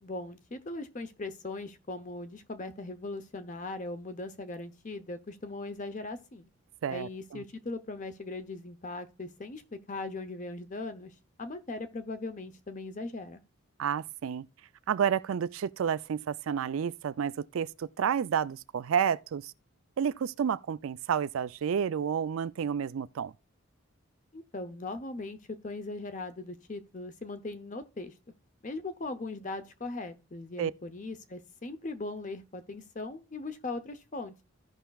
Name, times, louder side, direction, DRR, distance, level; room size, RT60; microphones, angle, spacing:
voice 1, 0.0-6.5 6.9-13.4 24.3-28.1 28.6-34.3, left 2 dB, 35° left, 0.7 m, -39 dB
voice 2, 6.8-7.4 13.8-14.5 14.9-19.5 20.0-23.3 30.6-30.7, right 7 dB, 70° right, 0.3 m, -30 dB
16.0 x 5.6 x 2.3 m
head